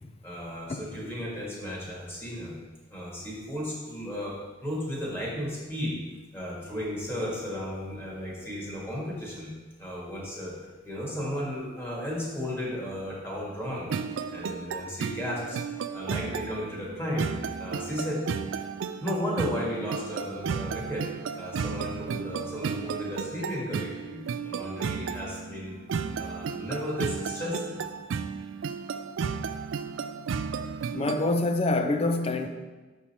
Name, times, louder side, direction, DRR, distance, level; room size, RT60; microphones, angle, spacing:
voice 1, 0.2-2.6 2.9-4.4 4.6-6.0 6.3-9.5 9.8-10.5 10.8-13.9 14.3-15.6 15.9-17.3 17.6-18.2 19.0-21.1 21.4-24.2 24.5-25.7 26.2-27.8, equal, 10° left, 1.9 m, -34 dB
sound 1, 13.9-31.3, right 6 dB, 80° right, 0.4 m, -33 dB
voice 2, 30.9-32.5, left 2 dB, 30° left, 0.5 m, -26 dB
6.3 x 5.4 x 4.3 m
head